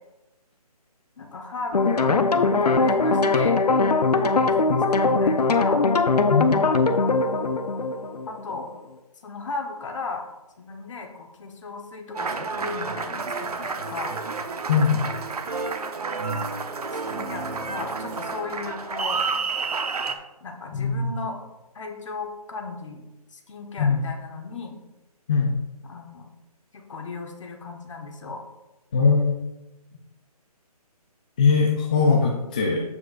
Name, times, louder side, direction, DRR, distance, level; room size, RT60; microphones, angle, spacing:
voice 1, 1.2-3.6 4.2-5.8 8.3-8.7 9.2-10.3 10.6-14.2 16.3-16.6 16.9-19.2 20.4-21.4 21.7-23.0 23.3-24.8 25.8-26.3 26.7-28.4, left 4 dB, 50° left, 3 dB, 1.4 m, -36 dB
sound 1, 1.7-8.7, left 3 dB, 80° left, 0.7 m, -21 dB
Applause, 12.1-20.2, right 4 dB, 75° right, 0.8 m, -30 dB
voice 2, 14.7-15.0 20.7-21.0 23.8-24.0 25.3-25.5 28.9-29.3 31.4-32.8, left 5 dB, 15° left, -2 dB, 0.4 m, -20 dB
14.5 x 4.9 x 2.5 m, 1.0 s
figure-of-eight pair, 155°, 20 cm